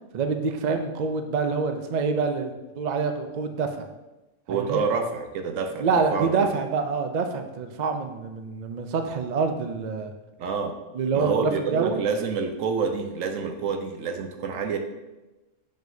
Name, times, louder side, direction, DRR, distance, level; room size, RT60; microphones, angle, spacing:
voice 1, 0.1-3.9 4.5-4.8 5.8-10.1 10.9-12.0, right 4 dB, 60° right, 6 dB, 0.4 m, -26 dB
voice 2, 4.5-6.5 10.4-10.8 11.1-14.8, right 5 dB, 80° right, 6 dB, 1.1 m, -28 dB
7.5 x 5.1 x 2.7 m, 1.1 s
omnidirectional pair, 1.4 m